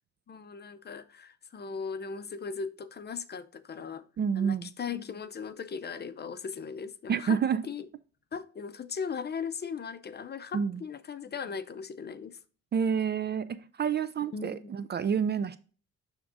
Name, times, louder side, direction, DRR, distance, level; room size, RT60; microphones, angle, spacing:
voice 1, 0.3-4.1 4.4-7.4 7.6-7.9 8.3-12.4 14.3-14.7, left 6 dB, 35° left, 0.6 m, -38 dB
voice 2, 4.2-4.7 7.1-7.6 10.5-10.8 12.7-15.6, right 7 dB, 35° right, 0.4 m, -28 dB
11.0 x 3.6 x 2.5 m
cardioid pair, 90°, 30 cm